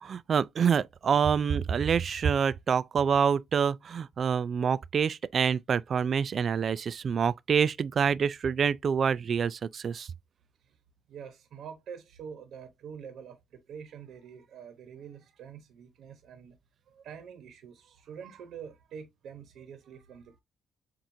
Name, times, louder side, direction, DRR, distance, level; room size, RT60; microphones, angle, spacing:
voice 1, 0.0-10.1, right 7 dB, 50° right, 0.4 m, -26 dB
voice 2, 11.1-16.6 16.9-20.4, right 7 dB, 75° right, 1.1 m, -46 dB
7.4 x 2.5 x 2.7 m
cardioid pair, 90°, 0 cm